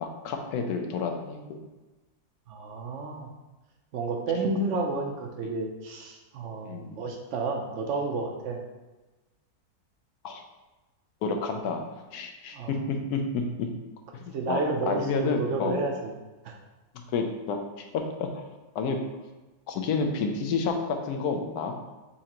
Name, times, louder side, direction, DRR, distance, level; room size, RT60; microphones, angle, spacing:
voice 1, 0.0-1.6 6.7-6.9 10.2-10.4 11.2-11.8 12.1-13.7 14.5-14.6 14.9-15.8 17.1-17.6 17.9-18.3 18.7-19.0 19.7-21.7, left 4 dB, 80° left, 4 dB, 1.1 m, -29 dB
voice 2, 2.5-3.3 3.9-8.6 12.5-12.8 14.3-16.1 16.4-16.5, right 3 dB, 65° right, 2 dB, 0.8 m, -31 dB
4.3 x 3.7 x 2.9 m, 1.1 s
omnidirectional pair, 1.6 m